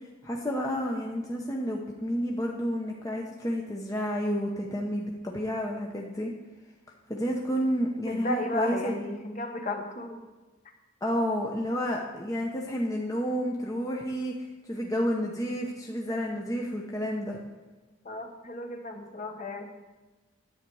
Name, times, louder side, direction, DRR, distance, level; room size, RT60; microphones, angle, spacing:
voice 1, 0.2-6.3 7.1-9.0 11.0-14.3 14.7-17.4, equal, 15° left, -1 dB, 0.8 m, -30 dB
voice 2, 8.1-10.2 18.0-19.7, left 1 dB, 35° left, 4 dB, 1.1 m, -34 dB
10.5 x 8.2 x 4.7 m, 1.2 s
head